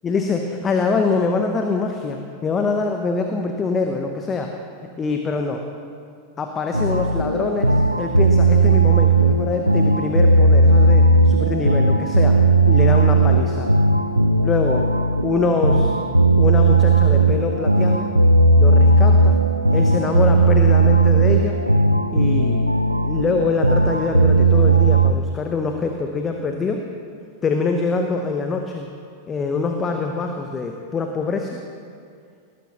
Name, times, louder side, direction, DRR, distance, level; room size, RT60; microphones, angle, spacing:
voice 1, 0.0-4.5 5.0-5.6 6.4-12.4 12.6-13.7 14.4-14.9 15.2-15.9 16.4-18.1 18.6-19.4 19.7-21.6 22.1-22.7 23.0-26.8 27.4-28.9 29.3-31.6, left 4 dB, 20° left, 4 dB, 0.9 m, -24 dB
sound 1, 6.7-25.1, right 2 dB, 90° right, 0.5 m, -16 dB
19.0 x 12.5 x 3.0 m, 2.3 s
figure-of-eight pair, 90°, 0 cm